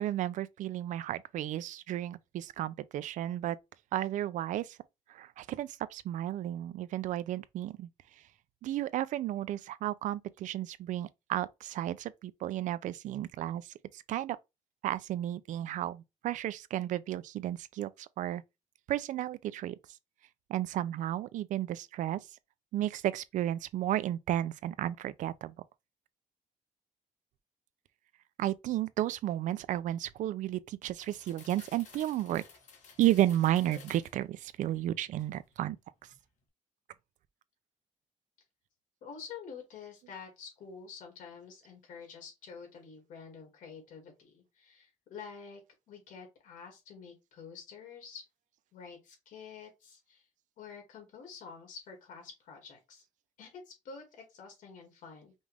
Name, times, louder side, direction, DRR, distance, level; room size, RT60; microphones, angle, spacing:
voice 1, 0.0-3.6 3.9-4.8 5.1-7.9 8.6-14.4 14.8-18.4 18.9-19.7 20.5-22.2 22.7-25.5 28.4-32.4 33.0-35.8, right 13 dB, 75° right, 0.4 m, -33 dB
sound 1, 31.0-34.2 34.7-35.6 36.0-36.2, left 5 dB, 65° left, 1.4 m, -54 dB
voice 2, 39.0-45.6 45.9-48.2 48.7-50.3 50.6-53.0 53.4-55.3, left 6 dB, 85° left, 2.2 m, -48 dB
5.3 x 2.4 x 3.3 m
cardioid pair, 170°, 13 cm